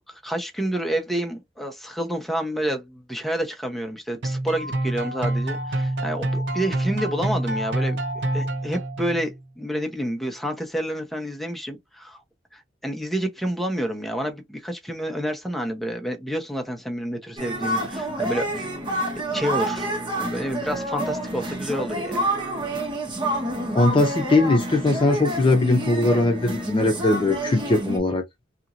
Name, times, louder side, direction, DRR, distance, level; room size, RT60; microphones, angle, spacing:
voice 1, 0.1-8.0 8.3-12.2 12.5-18.7 19.3-19.9 20.2-22.2, equal, ahead, 0.7 m, -29 dB
sound 1, 4.2-9.4, right 1 dB, 80° right, 0.6 m, -27 dB
sound 2, 17.4-28.0, right 1 dB, 25° right, 1.0 m, -28 dB
voice 2, 23.7-28.2, left 2 dB, 30° left, 0.4 m, -20 dB
2.9 x 2.6 x 2.4 m
head